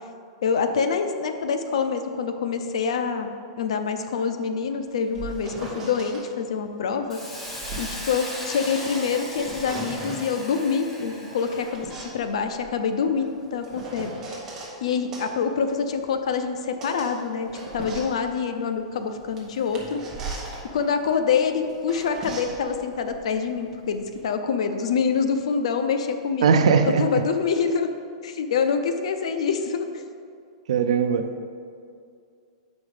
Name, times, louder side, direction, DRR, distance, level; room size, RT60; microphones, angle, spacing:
voice 1, 0.4-3.3 3.6-7.2 7.8-11.9 12.1-14.4 14.8-20.0 20.7-26.5 27.0-27.9 28.2-30.0, left 6 dB, 75° left, 7 dB, 0.6 m, -26 dB
sound 1, 4.9-6.2 7.1-8.9 9.2-10.3 11.1-14.7 15.1-24.2, right 3 dB, 15° right, 1.0 m, -39 dB
Hiss, 7.1-11.8, equal, 10° left, 0.9 m, -37 dB
voice 2, 26.4-27.1 30.7-31.4, right 6 dB, 80° right, 7 dB, 0.5 m, -20 dB
7.2 x 5.1 x 5.0 m, 2.3 s
supercardioid pair, 170°, 3 cm